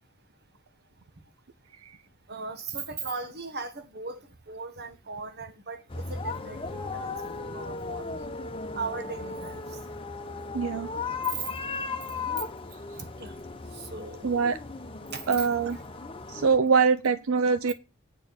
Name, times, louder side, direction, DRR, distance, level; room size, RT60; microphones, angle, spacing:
voice 1, 2.3-7.2 7.5-8.3 8.7-9.6 12.9-13.3 13.7-14.2 15.1-15.5 17.7-17.8, right 4 dB, 50° right, 1.3 m, -38 dB
sound 1, 5.9-16.6, left 4 dB, 25° left, 0.9 m, -36 dB
voice 2, 10.5-10.9 14.2-14.6 15.3-15.8 16.3-17.7, right 5 dB, 70° right, 0.5 m, -24 dB
9.3 x 4.4 x 7.0 m
head